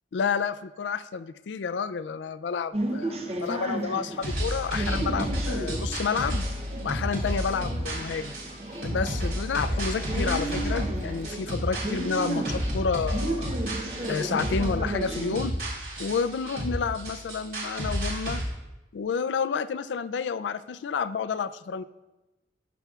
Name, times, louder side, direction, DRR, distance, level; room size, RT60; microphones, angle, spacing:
voice 1, 0.1-6.4 6.8-8.3 8.8-13.5 14.0-15.5 16.0-18.4 18.9-21.8, left 5 dB, 90° left, 14 dB, 0.4 m, -30 dB
sound 1, 2.7-15.4, right 2 dB, 35° right, 0.6 m, -34 dB
sound 2, 4.2-18.4, equal, 55° right, 3.5 m, -31 dB
19.5 x 6.9 x 2.4 m, 1.0 s
head